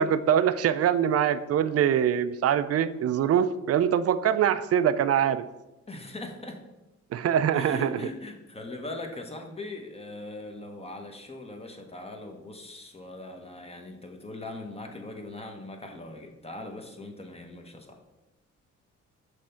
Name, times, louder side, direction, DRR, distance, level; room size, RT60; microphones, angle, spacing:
voice 1, 0.0-5.5 7.1-7.9, right 9 dB, 55° right, 13 dB, 0.5 m, -23 dB
voice 2, 5.9-6.6 7.5-18.0, left 2 dB, 20° left, 4 dB, 1.1 m, -40 dB
6.2 x 3.3 x 5.6 m, 0.98 s
cardioid pair, 90°, 30 cm